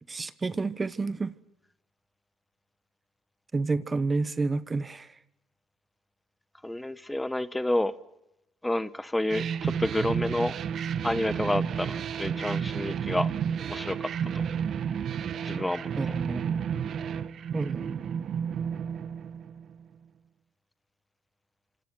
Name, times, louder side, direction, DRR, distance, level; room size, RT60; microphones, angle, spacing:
voice 1, 0.1-1.4 3.5-5.2 16.0-16.8 17.5-18.0, right 3 dB, 25° right, 1.1 m, -30 dB
voice 2, 6.6-7.9 8.6-10.5 11.0-13.3 13.6-14.4 15.4-15.9, left 1 dB, 10° left, 1.1 m, -29 dB
sound 1, 9.3-19.8, right 7 dB, 55° right, 1.3 m, -31 dB
27.5 x 26.5 x 6.2 m
supercardioid pair, 85°, 0 cm